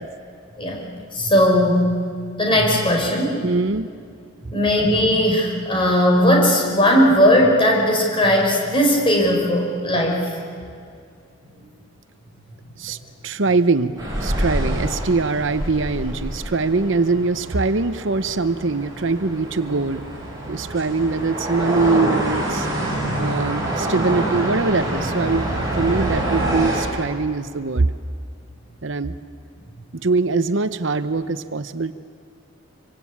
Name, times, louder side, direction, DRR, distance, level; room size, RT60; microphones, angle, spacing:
voice 1, 1.1-1.9 2.4-3.4 4.5-10.4, equal, 25° left, 0 dB, 5.1 m, -17 dB
voice 2, 3.4-3.9 12.8-13.0 13.2-20.0 20.5-22.7 23.2-25.5 25.8-27.9 28.8-29.1 29.9-31.9, right 3 dB, 60° right, 11 dB, 0.8 m, -22 dB
sound 1, 14.0-26.8, right 1 dB, 15° right, 7.1 m, -26 dB
26.0 x 25.0 x 8.7 m, 2.3 s
head